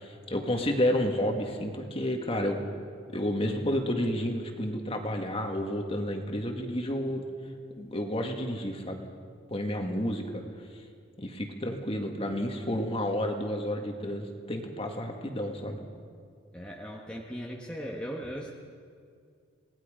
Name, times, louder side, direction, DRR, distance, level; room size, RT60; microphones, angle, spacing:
voice 1, 0.0-2.6 3.1-7.2 7.8-9.0 9.5-10.4 10.7-10.8 11.2-15.8, left 1 dB, 25° left, 3 dB, 1.9 m, -30 dB
voice 2, 16.5-18.6, equal, 5° left, -2 dB, 1.4 m, -38 dB
27.5 x 19.0 x 5.1 m, 2.2 s
head